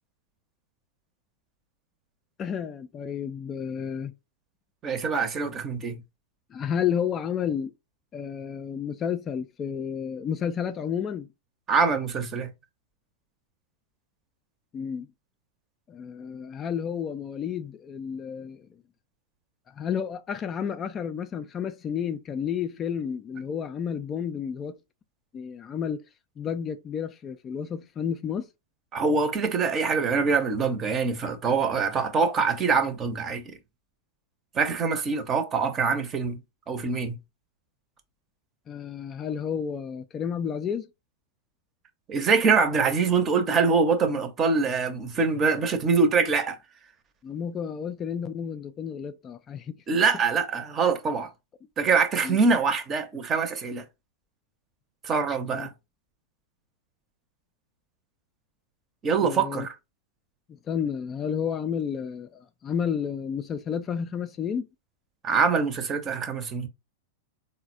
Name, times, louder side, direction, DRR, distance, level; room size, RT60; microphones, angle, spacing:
voice 1, 2.4-4.1 6.5-7.7 8.1-11.3 14.7-15.1 15.9-18.7 19.7-24.8 25.3-26.0 26.4-28.5 38.7-40.9 47.2-49.8 52.2-52.4 55.3-55.7 59.2-59.7 60.5-64.7, left 7 dB, 30° left, 0.3 m, -31 dB
voice 2, 4.8-6.0 11.7-12.5 28.9-33.6 34.5-36.4 36.7-37.2 42.1-46.6 49.9-51.3 51.8-53.8 55.0-55.7 59.0-59.7 65.2-66.7, right 5 dB, 30° right, 0.7 m, -24 dB
3.8 x 2.1 x 2.5 m
hypercardioid pair, 105°, 0 cm